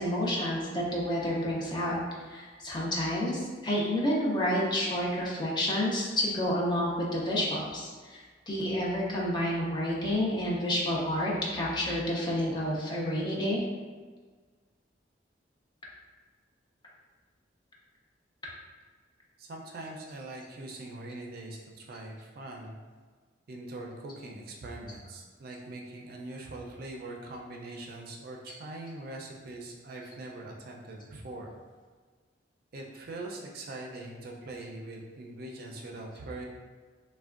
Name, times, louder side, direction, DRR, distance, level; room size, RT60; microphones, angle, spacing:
voice 1, 0.0-2.0 2.3-13.6, left 1 dB, 25° left, -4 dB, 0.5 m, -29 dB
voice 2, 19.4-22.8 23.5-31.5 32.7-36.5, right 2 dB, 55° right, 0 dB, 0.4 m, -42 dB
3.4 x 2.1 x 2.4 m, 1.5 s
head